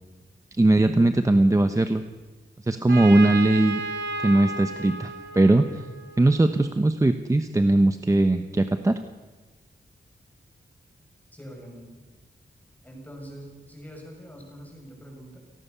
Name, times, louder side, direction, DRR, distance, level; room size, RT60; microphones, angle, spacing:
voice 1, 0.6-2.0 2.6-3.8 4.2-5.8 6.2-9.0, right 2 dB, 15° right, 8 dB, 0.9 m, -20 dB
Trumpet, 2.9-6.6, right 2 dB, 65° right, 2.8 m, -33 dB
voice 2, 11.3-12.1 12.8-15.4, equal, 10° left, 0 dB, 6.8 m, -44 dB
28.5 x 18.5 x 6.9 m, 1.2 s
wide cardioid pair, 145°, 19 cm